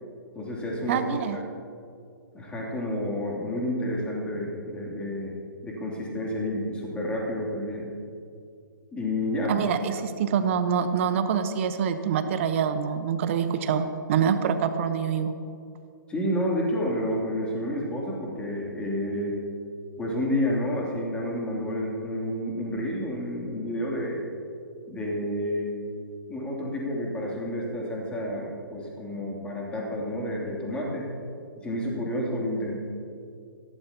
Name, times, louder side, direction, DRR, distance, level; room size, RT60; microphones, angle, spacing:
voice 1, 0.3-1.4 2.3-5.3 5.6-7.9 8.9-9.6 16.1-19.4 20.0-24.2 24.9-25.7 26.3-31.1 31.6-32.8, left 1 dB, 10° left, -3 dB, 3.0 m, -30 dB
voice 2, 0.9-1.4 9.5-15.3, right 7 dB, 35° right, 9 dB, 1.0 m, -25 dB
21.5 x 16.0 x 2.9 m, 2.4 s
figure-of-eight pair, 125°, 11 cm